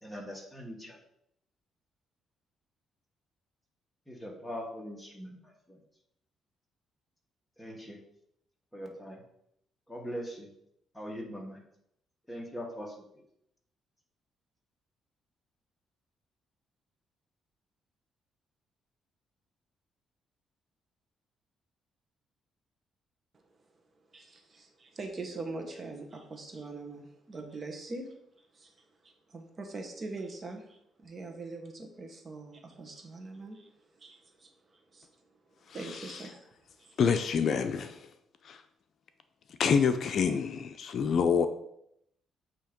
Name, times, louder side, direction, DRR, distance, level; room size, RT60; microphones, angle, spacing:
voice 1, 0.0-1.0 4.1-5.4 7.6-8.0 8.7-9.2 9.9-10.5 10.9-11.6 12.3-12.9, equal, 5° left, 0 dB, 1.7 m, -41 dB
voice 2, 24.1-28.1 28.5-35.1 35.7-36.5 36.8-37.0, right 3 dB, 40° right, 4 dB, 1.2 m, -43 dB
voice 3, 37.0-38.1 38.4-38.6 39.6-41.5, left 6 dB, 60° left, 8 dB, 0.5 m, -27 dB
8.2 x 2.9 x 5.1 m, 0.76 s
cardioid pair, 90°, 0 cm